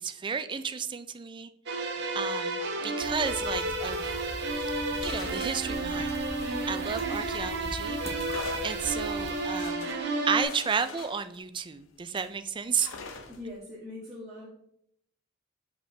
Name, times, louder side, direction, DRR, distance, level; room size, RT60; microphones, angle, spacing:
voice 1, 0.0-1.5 1.8-1.9 2.1-4.1 5.0-6.1 6.7-8.0 8.6-9.9 10.3-12.9, right 6 dB, 25° right, 11 dB, 0.4 m, -32 dB
sound 1, 1.7-10.4, right 2 dB, 60° right, 1.1 m, -32 dB
sound 2, 3.0-9.7, equal, 15° left, 1.1 m, -42 dB
sound 3, 4.5-7.5 8.2-12.3 12.8-13.5, left 4 dB, 90° left, 0.8 m, -45 dB
voice 2, 13.2-14.5, left 1 dB, 5° right, -13 dB, 1.9 m, -41 dB
6.6 x 5.1 x 3.3 m, 0.71 s
head